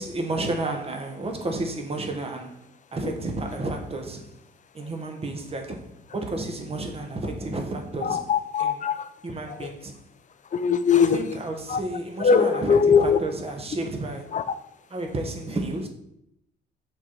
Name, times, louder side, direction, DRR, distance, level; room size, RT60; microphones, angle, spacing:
voice 1, 0.0-4.3 4.7-8.3 8.6-8.8 9.2-9.9 11.0-14.4 14.9-15.9, right 2 dB, 30° right, 1.2 m, -31 dB
voice 2, 8.0-9.1 10.5-11.2 11.7-11.8 12.2-13.2 14.3-14.4, left 6 dB, 40° left, 0.5 m, -20 dB
5.8 x 4.0 x 4.5 m
cardioid pair, 90°, 20 cm